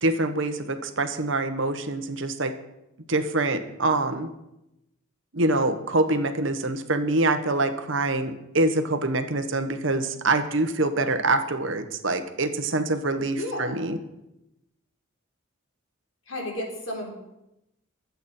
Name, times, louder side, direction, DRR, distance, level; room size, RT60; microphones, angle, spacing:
voice 1, 0.0-2.5 3.1-4.3 5.3-14.0, right 2 dB, 65° right, 8 dB, 1.2 m, -25 dB
voice 2, 13.3-13.9 16.3-17.1, left 1 dB, 75° left, 0 dB, 3.9 m, -32 dB
22.5 x 8.2 x 4.3 m, 0.89 s
head